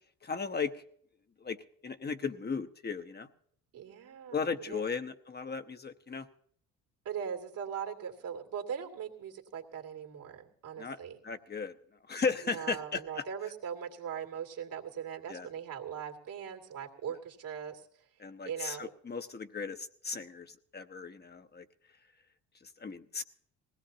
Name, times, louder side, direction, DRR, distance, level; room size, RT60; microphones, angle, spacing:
voice 1, 0.2-0.8 1.4-1.6 1.8-3.3 4.3-6.3 10.8-11.0 11.2-11.7 12.1-13.0 15.3-15.5 18.2-21.6 22.8-23.2, left 5 dB, 30° left, 8 dB, 0.9 m, -36 dB
voice 2, 3.7-4.8 7.0-11.2 12.4-17.9 18.4-18.9, right 8 dB, 70° right, 3 dB, 2.5 m, -40 dB
20.0 x 17.0 x 2.8 m, 0.64 s
supercardioid pair, 75°, 35 cm